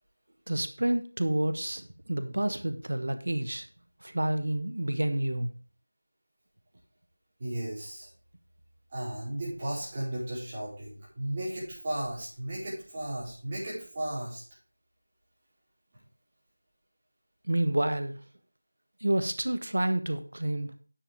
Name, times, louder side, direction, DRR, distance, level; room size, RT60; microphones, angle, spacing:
voice 1, 0.5-3.7 4.0-5.5 17.5-18.1 19.0-20.7, right 1 dB, 70° right, 9 dB, 1.2 m, -29 dB
voice 2, 7.4-8.1 8.9-14.4, right 1 dB, 20° right, -8 dB, 4.9 m, -35 dB
10.0 x 7.9 x 3.6 m, 0.40 s
figure-of-eight pair, 175°, 0 cm